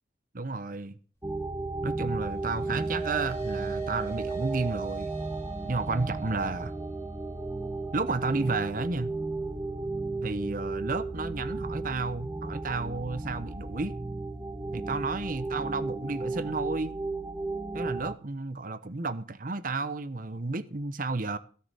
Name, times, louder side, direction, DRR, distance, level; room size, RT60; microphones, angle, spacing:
voice 1, 0.3-1.0 1.8-5.1 5.6-6.7 7.9-9.1 10.2-13.9 14.7-16.9 17.7-21.4, right 3 dB, 45° right, 0.9 m, -32 dB
sound 1, 1.2-18.2, right 2 dB, 10° right, 0.5 m, -34 dB
sound 2, 2.3-10.8, right 7 dB, 15° left, 3.0 m, -41 dB
13.5 x 6.9 x 7.0 m
head